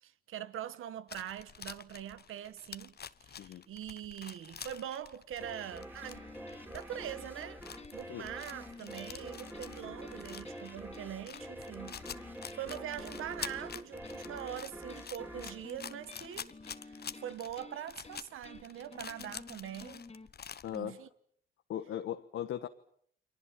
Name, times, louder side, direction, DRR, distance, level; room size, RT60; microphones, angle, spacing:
voice 1, 0.0-3.0 3.2-6.3 6.7-7.6 7.9-16.5 16.8-20.0 20.7-21.1, right 10 dB, 80° right, 1.5 m, -43 dB
sound 1, 1.1-20.8, left 7 dB, 50° left, 1.1 m, -47 dB
sound 2, 5.4-16.7, right 1 dB, 10° right, 4.2 m, -47 dB
sound 3, 6.0-20.3, left 3 dB, 30° left, 2.8 m, -53 dB
voice 2, 20.6-21.0 21.7-22.7, left 11 dB, 80° left, 1.3 m, -38 dB
30.0 x 23.5 x 7.6 m
supercardioid pair, 60°, 21 cm